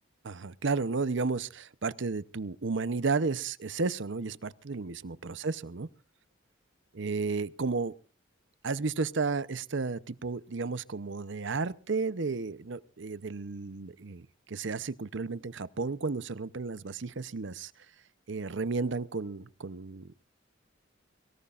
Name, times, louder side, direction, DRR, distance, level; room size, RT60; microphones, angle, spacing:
voice 1, 0.2-5.9 6.9-7.9 8.6-17.7 18.3-20.1, right 4 dB, 65° right, 16 dB, 0.7 m, -33 dB
23.5 x 18.0 x 2.5 m, 0.38 s
head